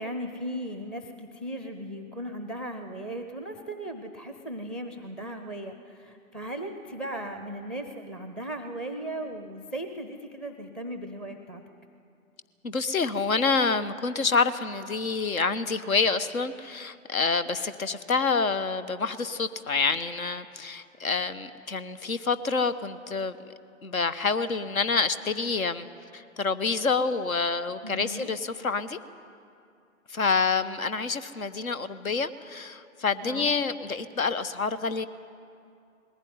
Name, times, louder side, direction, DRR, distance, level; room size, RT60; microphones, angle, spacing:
voice 1, 0.0-11.6 27.8-28.3 33.2-33.5, right 1 dB, ahead, 7 dB, 0.5 m, -37 dB
voice 2, 12.6-23.4 23.8-25.9 26.1-29.0 30.1-35.1, left 4 dB, 75° left, 13 dB, 1.2 m, -27 dB
20.0 x 16.0 x 9.5 m, 2.5 s
figure-of-eight pair, 120°, 42 cm